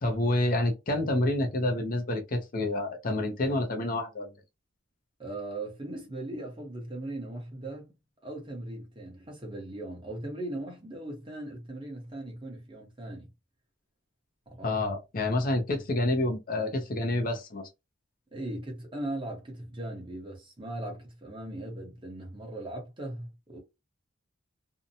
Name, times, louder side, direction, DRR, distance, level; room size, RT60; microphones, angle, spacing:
voice 1, 0.0-4.3 14.6-17.7, left 1 dB, 40° left, 0.5 m, -28 dB
voice 2, 5.2-7.9 8.2-13.3 14.5-14.8 18.3-23.6, right 1 dB, 25° right, 0.9 m, -39 dB
2.7 x 2.1 x 2.6 m
head